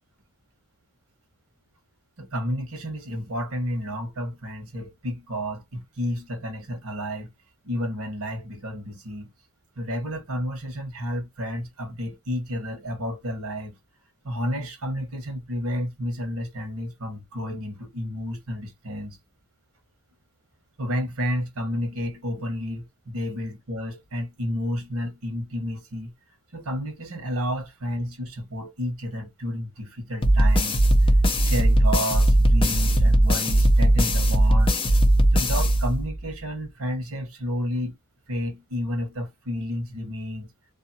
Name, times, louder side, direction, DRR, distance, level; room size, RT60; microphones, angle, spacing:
voice 1, 2.2-7.3 7.6-9.3 9.8-13.8 14.2-19.2 20.8-26.1 26.5-31.1 31.4-34.7 35.3-37.9 38.3-40.5, equal, 75° right, 1.2 m, -31 dB
sound 1, 30.2-36.3, right 1 dB, 25° left, 0.6 m, -19 dB
2.8 x 2.4 x 2.6 m
head